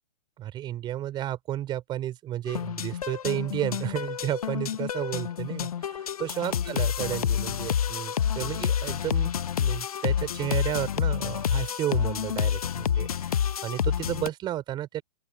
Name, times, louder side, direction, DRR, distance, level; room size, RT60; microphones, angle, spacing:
voice 1, 0.4-9.3 9.6-15.0, right 12 dB, 20° right, 4.5 m, -32 dB
sound 1, 2.5-14.3, left 8 dB, 60° left, 1.4 m, -28 dB
open air
figure-of-eight pair, 120°, 21 cm